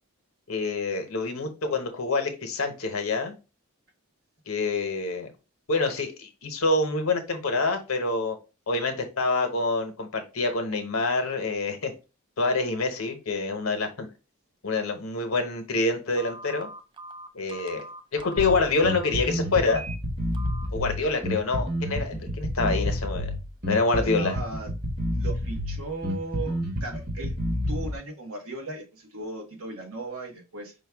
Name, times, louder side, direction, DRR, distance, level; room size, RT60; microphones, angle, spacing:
voice 1, 0.5-3.3 4.5-5.3 5.7-8.4 8.7-11.9 12.4-14.1 14.6-16.7 17.3-17.8 18.1-19.8 20.7-23.3 23.7-24.4, left 3 dB, 65° left, 0.8 m, -26 dB
Telephone, 16.1-19.1 19.6-19.9 20.3-20.7, right 2 dB, 20° right, 0.3 m, -42 dB
Bass guitar, 18.4-27.9, equal, 40° right, 1.3 m, -29 dB
voice 2, 23.9-24.7 25.1-27.3 27.7-30.7, right 2 dB, 65° right, 1.1 m, -37 dB
5.2 x 2.3 x 3.4 m
head